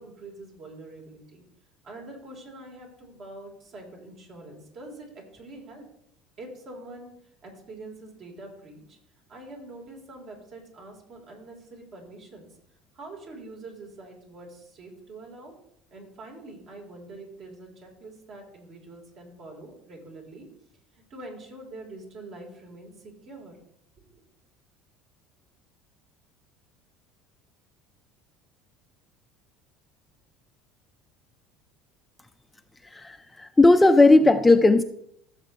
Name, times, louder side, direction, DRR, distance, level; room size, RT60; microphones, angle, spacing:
voice 1, 0.0-1.4 1.8-5.9 6.4-7.1 7.4-9.0 9.3-12.5 12.9-15.5 15.9-20.5 20.9-23.6 24.0-24.2, right 2 dB, 50° right, 0 dB, 4.0 m, -44 dB
voice 2, 32.8-34.8, left 2 dB, 10° left, 8 dB, 0.5 m, -17 dB
15.5 x 7.4 x 3.2 m, 0.73 s
supercardioid pair, 120°, 0 cm